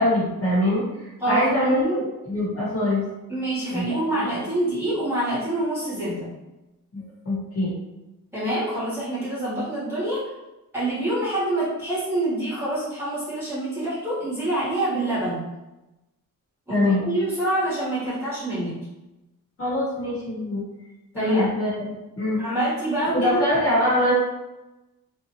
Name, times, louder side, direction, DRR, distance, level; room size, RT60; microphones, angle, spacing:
voice 1, 0.0-1.8 2.2-3.0 3.7-4.0 6.9-7.7 16.7-17.1 19.6-20.6 21.1-21.9 22.2-22.4 23.1-24.1, left 1 dB, 45° left, -8 dB, 1.3 m, -23 dB
voice 2, 1.2-2.0 3.3-6.3 8.3-10.3 10.7-15.4 16.7-18.8 21.1-21.5 22.4-23.4, right 1 dB, 5° right, -11 dB, 1.3 m, -26 dB
2.7 x 2.4 x 2.9 m, 0.99 s
wide cardioid pair, 160°, 34 cm